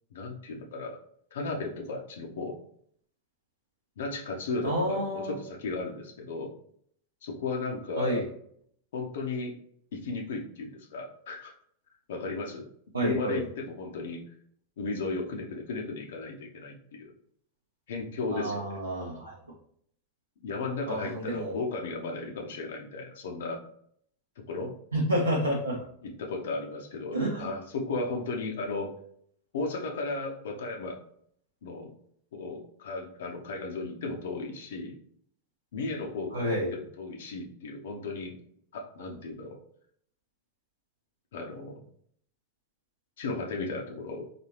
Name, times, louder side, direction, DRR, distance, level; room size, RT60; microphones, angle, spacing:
voice 1, 0.1-1.0 1.3-2.6 4.0-6.5 7.2-8.2 8.9-9.5 9.9-11.5 12.1-12.7 13.0-14.2 14.8-17.1 17.9-18.8 20.4-23.6 24.5-24.7 26.0-28.9 29.5-31.0 31.6-31.9 32.3-35.0 35.7-38.4 38.7-39.6 41.3-41.8 43.2-44.3, left 3 dB, 60° left, 1 dB, 0.6 m, -35 dB
voice 2, 4.6-5.3 8.0-8.2 12.9-13.4 18.3-19.3 20.9-21.6 24.9-25.8 27.1-27.5 36.3-36.7, equal, 80° right, -3 dB, 0.8 m, -29 dB
4.1 x 2.6 x 3.0 m, 0.64 s
figure-of-eight pair, 90°, 0 cm